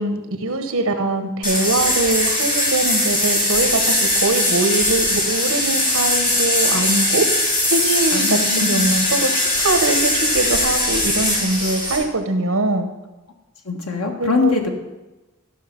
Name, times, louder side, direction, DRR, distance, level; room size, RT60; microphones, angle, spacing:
voice 1, 0.0-7.3 7.7-9.3 9.6-12.9 14.2-14.5, right 2 dB, 70° right, 7 dB, 1.2 m, -22 dB
sound 1, 1.4-12.0, left 1 dB, 40° left, 2.5 m, -20 dB
voice 2, 8.1-9.0 13.6-14.7, left 4 dB, 75° left, 3 dB, 1.5 m, -22 dB
13.0 x 5.9 x 5.3 m, 1.1 s
head